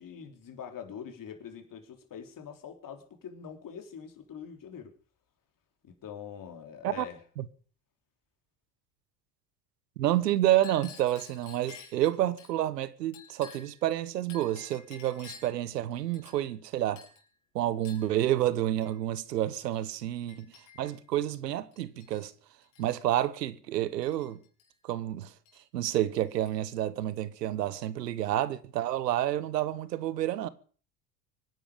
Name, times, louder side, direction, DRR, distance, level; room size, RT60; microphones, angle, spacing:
voice 1, 0.0-4.9 5.8-7.2, left 7 dB, 40° left, 3.7 m, -44 dB
voice 2, 10.0-17.0 17.5-20.5 20.8-22.3 22.8-24.4 24.8-25.3 25.7-30.5, right 13 dB, 85° right, 1.2 m, -29 dB
Chink clink, 10.5-12.5 13.1-13.8 14.3-15.6 16.1-16.7 17.0-17.3 17.8-18.1 18.8-19.0 19.7-19.9 20.3-21.0 21.7-22.3 22.6-23.0 24.0-24.7 25.5-25.6 25.9-26.8, left 7 dB, 70° left, 5.7 m, -52 dB
24.5 x 10.5 x 5.1 m
hypercardioid pair, 75°, 47 cm